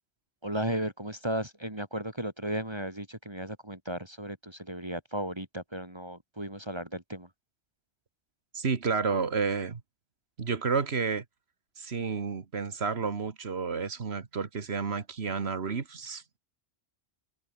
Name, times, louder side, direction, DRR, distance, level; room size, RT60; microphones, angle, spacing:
voice 1, 0.4-7.3, right 1 dB, 25° right, 2.5 m, -35 dB
voice 2, 8.5-9.8 10.4-11.2 11.8-16.4, right 5 dB, 65° right, 1.8 m, -31 dB
omnidirectional pair, 1.2 m